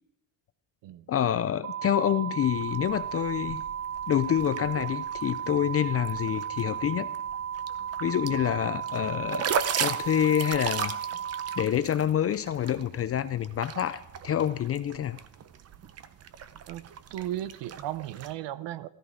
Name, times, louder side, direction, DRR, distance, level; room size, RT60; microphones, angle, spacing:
voice 1, 1.1-3.6 4.1-7.1 8.0-9.5 9.8-11.0 11.6-15.2, left 10 dB, 30° left, 13 dB, 0.4 m, -27 dB
sound 1, 1.6-11.6, right 8 dB, 85° right, 2.2 m, -35 dB
sound 2, 2.4-18.3, right 7 dB, 30° right, 0.7 m, -38 dB
voice 2, 17.1-18.9, right 13 dB, 60° right, 16 dB, 0.9 m, -35 dB
15.5 x 14.0 x 5.0 m, 0.76 s
cardioid pair, 155°, 49 cm